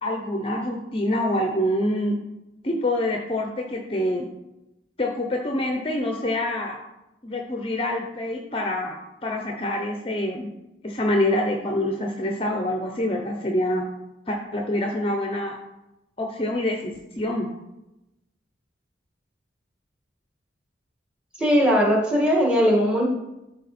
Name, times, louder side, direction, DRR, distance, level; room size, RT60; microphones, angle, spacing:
voice 1, 0.0-2.2 2.6-4.3 5.0-6.8 7.2-9.0 9.2-10.5 10.8-13.8 14.3-15.5 16.2-17.5, left 1 dB, 30° left, 2 dB, 0.7 m, -26 dB
voice 2, 21.4-23.0, equal, 5° right, -2 dB, 1.9 m, -19 dB
12.5 x 4.4 x 4.2 m, 0.94 s
head